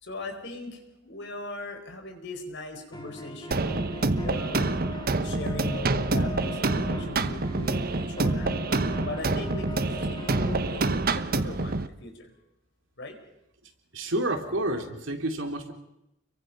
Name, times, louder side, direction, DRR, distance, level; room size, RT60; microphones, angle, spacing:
voice 1, 0.0-4.8 5.2-8.5 9.0-12.3 13.0-13.2, left 2 dB, 65° left, 4 dB, 4.6 m, -39 dB
sound 1, 2.9-10.9, left 1 dB, 20° left, 1.9 m, -41 dB
sound 2, 3.5-11.9, right 3 dB, 50° right, 1.0 m, -27 dB
voice 2, 13.9-15.7, right 1 dB, 75° right, 4 dB, 3.2 m, -29 dB
29.5 x 23.0 x 5.5 m, 0.85 s
head